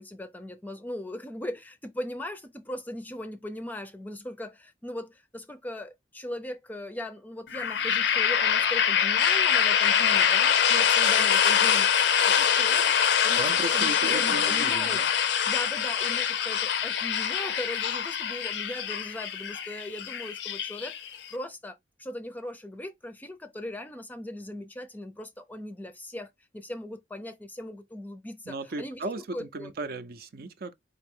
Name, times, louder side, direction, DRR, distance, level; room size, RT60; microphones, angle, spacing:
voice 1, 0.0-12.9 13.2-15.0 15.5-29.7, left 1 dB, 10° left, 0.5 m, -39 dB
sound 1, 7.5-21.3, left 8 dB, 65° left, 0.5 m, -24 dB
voice 2, 13.4-15.1 28.5-30.7, right 2 dB, 55° right, 0.5 m, -36 dB
4.2 x 2.7 x 3.6 m
head